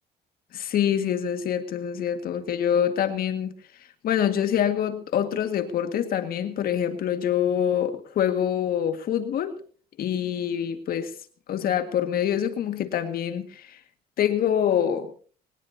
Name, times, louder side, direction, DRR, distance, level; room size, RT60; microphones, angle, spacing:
voice 1, 0.5-3.5 4.0-9.6 10.0-11.1 11.5-13.8 14.2-15.1, left 9 dB, 60° left, 8 dB, 1.9 m, -25 dB
22.5 x 19.0 x 2.8 m, 0.42 s
cardioid pair, 110°, 17 cm